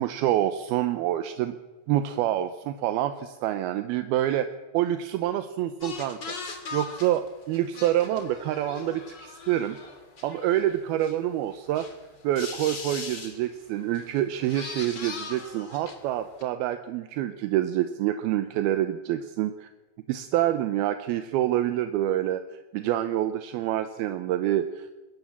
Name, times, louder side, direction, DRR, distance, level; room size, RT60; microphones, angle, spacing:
voice 1, 0.0-1.6 1.9-4.5 4.7-6.2 6.7-9.8 10.2-11.9 12.2-19.7 20.1-22.4 22.7-24.9, right 12 dB, 80° right, 10 dB, 2.8 m, -27 dB
sound 1, 5.8-11.2 11.5-12.0 12.4-13.4 13.9-14.1 14.4-16.1 16.4-16.5, left 4 dB, 30° left, 2.6 m, -40 dB
22.0 x 17.5 x 7.3 m, 1.2 s
omnidirectional pair, 4.4 m